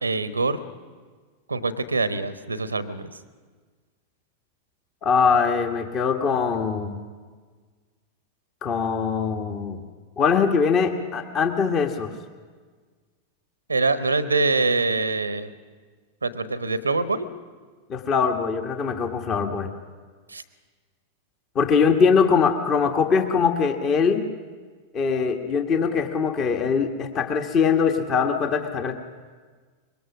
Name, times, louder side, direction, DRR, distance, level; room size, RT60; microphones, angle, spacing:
voice 1, 0.0-0.6 1.5-3.1 13.7-15.5 16.2-17.3 20.3-20.4, right 3 dB, 80° right, 12 dB, 1.1 m, -24 dB
voice 2, 5.0-7.0 8.6-9.8 10.2-12.1 17.9-19.7 21.5-24.2 24.9-28.9, left 5 dB, 30° left, 5 dB, 1.5 m, -22 dB
24.0 x 21.5 x 6.2 m, 1.5 s
figure-of-eight pair, 90°, 0 cm